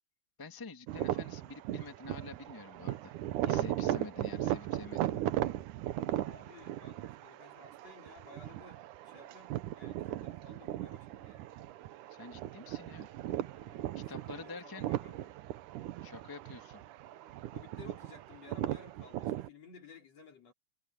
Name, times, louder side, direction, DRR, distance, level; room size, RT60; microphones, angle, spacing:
voice 1, 0.4-3.1 3.4-5.2 12.1-13.1 13.9-14.9 16.0-16.8, left 3 dB, 10° left, 0.9 m, -47 dB
sound 1, 0.9-19.5, right 14 dB, 70° right, 2.1 m, -37 dB
voice 2, 6.2-11.5 13.4-15.4 17.5-20.5, left 3 dB, 45° left, 4.9 m, -56 dB
omnidirectional pair, 4.2 m